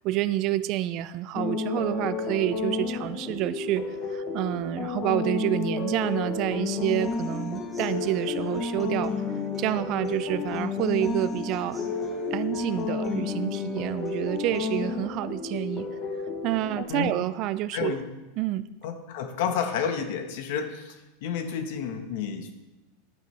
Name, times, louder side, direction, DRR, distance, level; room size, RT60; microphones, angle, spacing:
voice 1, 0.0-9.1 9.6-11.8 12.3-15.9 16.4-18.0 18.4-18.7, right 14 dB, 40° right, 15 dB, 0.3 m, -28 dB
sound 1, 1.3-16.8, left 4 dB, 25° left, 0.9 m, -31 dB
Human voice / Acoustic guitar, 6.8-14.8, right 2 dB, 5° right, 2.3 m, -46 dB
voice 2, 17.7-18.0 18.8-22.6, left 7 dB, 60° left, 6 dB, 1.3 m, -31 dB
11.5 x 8.4 x 3.4 m, 1.1 s
supercardioid pair, 160°, 0 cm